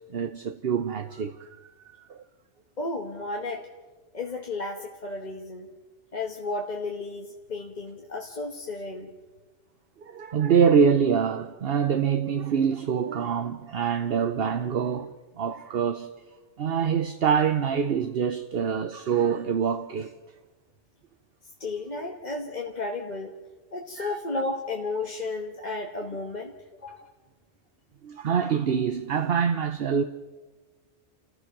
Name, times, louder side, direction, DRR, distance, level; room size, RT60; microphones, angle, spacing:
voice 1, 0.1-1.5 2.1-2.2 10.0-16.1 16.6-20.1 24.0-24.2 28.0-30.0, right 7 dB, 60° right, 1.0 m, -25 dB
voice 2, 2.8-3.7 4.1-5.7 6.1-9.1 21.6-23.3 23.7-26.5 26.8-27.1, left 3 dB, 40° left, 1.5 m, -33 dB
29.5 x 15.0 x 6.0 m
omnidirectional pair, 1.2 m